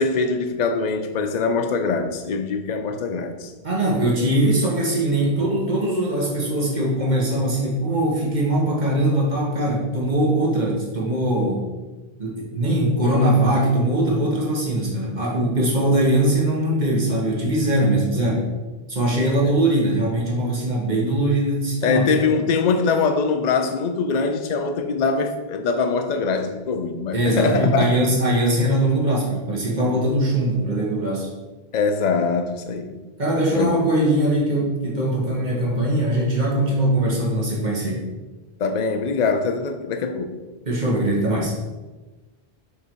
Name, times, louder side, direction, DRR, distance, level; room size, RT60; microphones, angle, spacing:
voice 1, 0.0-3.5 19.4-19.5 21.8-27.9 31.7-32.9 33.5-33.7 38.6-40.3, left 4 dB, 50° left, 0.6 m, -23 dB
voice 2, 3.6-11.7 12.2-18.5 18.9-22.0 27.1-31.3 33.2-38.0 40.7-41.5, right 1 dB, 45° right, 1.5 m, -21 dB
5.6 x 4.0 x 4.5 m
omnidirectional pair, 1.0 m